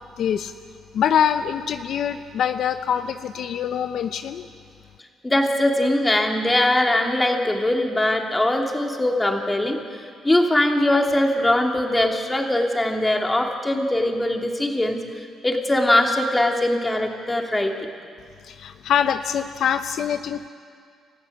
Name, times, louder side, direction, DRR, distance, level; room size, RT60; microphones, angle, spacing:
voice 1, 0.2-0.5 0.9-4.5 18.4-20.5, left 8 dB, 70° left, 9 dB, 0.7 m, -24 dB
voice 2, 5.2-15.0 15.4-17.9, left 1 dB, 15° left, 2 dB, 3.0 m, -21 dB
29.5 x 14.5 x 8.7 m, 2.2 s
cardioid pair, 90°, 0 cm